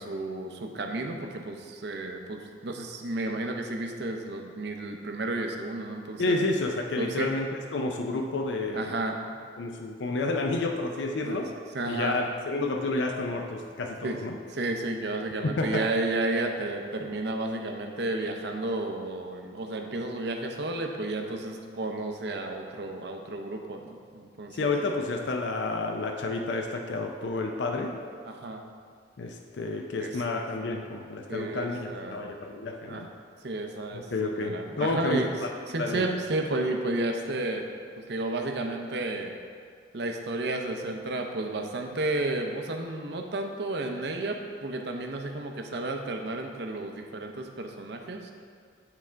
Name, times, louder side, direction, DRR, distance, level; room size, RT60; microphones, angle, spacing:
voice 1, 0.0-6.3 7.0-7.3 8.7-9.4 11.2-11.4 11.7-12.2 14.0-14.2 14.5-24.7 28.3-28.6 30.0-30.1 31.3-32.3 32.9-33.0 33.4-35.3 35.7-37.7 38.0-39.3 39.9-48.3, right 2 dB, 65° right, 3 dB, 0.6 m, -32 dB
voice 2, 6.2-8.9 9.6-11.5 11.9-14.4 15.4-15.9 24.5-27.9 29.2-33.1 33.9-35.5 35.7-36.1, left 2 dB, 70° left, 2 dB, 0.5 m, -30 dB
8.8 x 3.6 x 4.5 m, 2.1 s
head